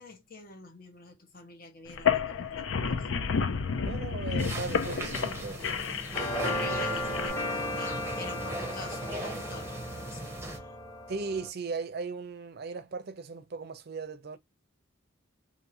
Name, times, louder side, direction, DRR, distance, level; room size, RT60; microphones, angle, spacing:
voice 1, 0.0-3.1 6.4-10.8, left 3 dB, 45° left, 0.9 m, -46 dB
sound 1, 1.9-7.3, left 6 dB, 70° left, 0.5 m, -31 dB
voice 2, 3.8-5.7 6.1-7.1 11.1-14.4, right 4 dB, 50° right, 0.5 m, -37 dB
sound 2, 4.4-10.6, right 2 dB, 15° right, 0.7 m, -39 dB
sound 3, 6.1-11.5, left 1 dB, 15° left, 0.9 m, -35 dB
2.7 x 2.6 x 2.8 m
head